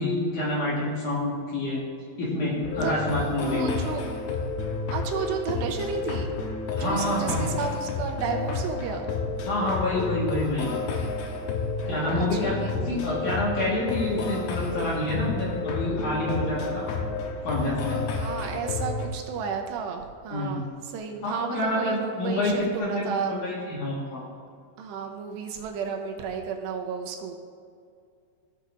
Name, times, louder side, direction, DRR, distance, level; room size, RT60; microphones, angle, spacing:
voice 1, 0.0-1.8 2.2-3.8 6.8-7.5 9.4-10.7 11.8-16.9 17.4-18.0 20.3-20.6 21.2-24.3, left 1 dB, 55° left, -6 dB, 2.5 m, -28 dB
sound 1, 2.6-19.1, left 4 dB, 75° left, 2.6 m, -31 dB
voice 2, 3.4-4.0 4.9-6.3 6.7-9.1 11.9-12.7 18.2-23.3 24.8-27.4, right 6 dB, 80° right, 3 dB, 2.8 m, -32 dB
16.0 x 6.6 x 2.6 m, 2.3 s
omnidirectional pair, 5.0 m